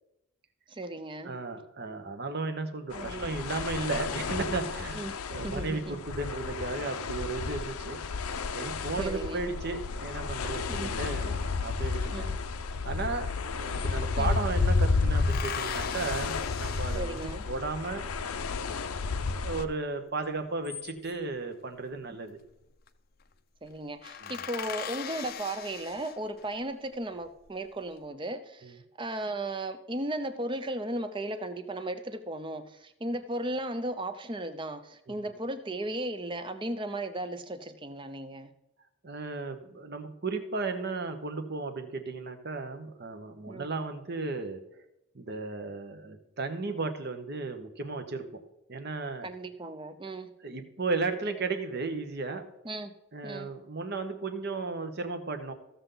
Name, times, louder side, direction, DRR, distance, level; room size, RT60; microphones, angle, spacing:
voice 1, 0.7-1.4 2.9-3.3 4.9-5.1 5.4-6.0 9.0-9.5 10.7-10.9 12.1-12.4 14.2-14.3 16.9-17.4 23.6-38.5 43.5-43.7 49.2-50.3 52.6-52.9 53.2-53.5, right 1 dB, 20° right, 10 dB, 0.6 m, -36 dB
voice 2, 1.2-8.0 8.5-12.3 12.8-13.3 13.6-18.1 19.3-22.4 24.2-24.3 28.6-28.7 35.1-35.2 39.0-44.6 45.1-48.4 48.7-49.3 50.4-52.5 53.1-55.5, right 3 dB, 45° right, 7 dB, 1.0 m, -35 dB
sound 1, 2.9-19.7, left 4 dB, 80° left, 0.7 m, -32 dB
sound 2, 13.1-13.2 13.4-14.4 15.2-17.7 20.4-21.3 22.5-22.9 23.2-23.3 23.7-23.8 24.0-26.6 27.1-27.8, left 9 dB, 40° left, 0.5 m, -41 dB
15.0 x 6.9 x 3.9 m, 0.88 s
head